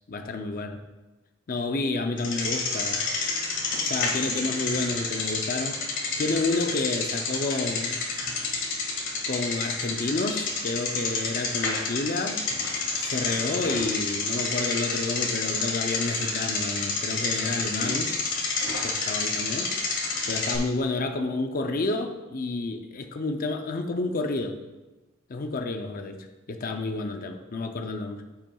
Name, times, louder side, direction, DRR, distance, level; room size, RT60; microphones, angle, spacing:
voice 1, 0.1-0.8 1.5-3.0 3.8-5.8 6.2-8.0 9.3-12.4 13.0-18.2 18.8-19.7 20.3-24.6 25.3-28.2, left 3 dB, 45° left, 6 dB, 0.5 m, -30 dB
Bicycle, 2.2-20.6, left 3 dB, 60° left, 1.8 m, -29 dB
14.0 x 5.6 x 2.3 m, 1.1 s
head